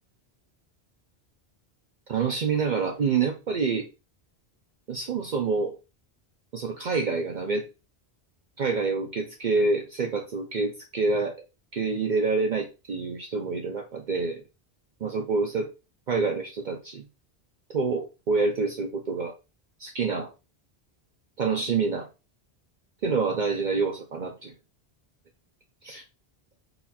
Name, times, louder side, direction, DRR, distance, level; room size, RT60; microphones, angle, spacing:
voice 1, 2.1-3.9 4.9-5.8 6.5-7.6 8.6-11.4 11.7-14.4 15.0-15.7 16.1-17.1 17.7-19.3 19.8-20.3 21.4-22.1 23.0-24.5 25.8-26.0, right 4 dB, 50° right, 3 dB, 0.7 m, -27 dB
4.1 x 2.4 x 4.1 m, 0.28 s
omnidirectional pair, 1.1 m